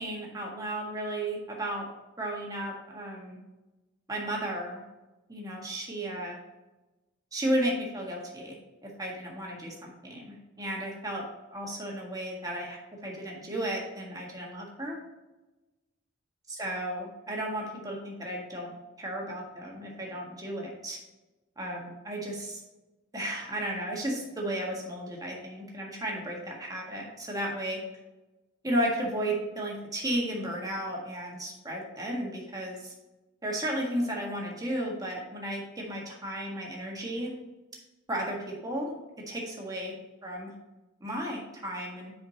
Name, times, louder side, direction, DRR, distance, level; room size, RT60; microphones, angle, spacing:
voice 1, 0.0-1.9 2.2-3.4 4.1-4.8 5.3-6.4 7.3-8.5 8.8-11.2 11.5-15.0 16.5-18.7 19.0-21.0 21.6-22.6 23.1-27.8 28.6-32.9 33.4-37.3 38.1-38.9 39.3-39.9 40.2-40.5 41.0-42.1, right 1 dB, 20° right, -2 dB, 1.6 m, -34 dB
9.3 x 5.0 x 2.9 m, 1.1 s
head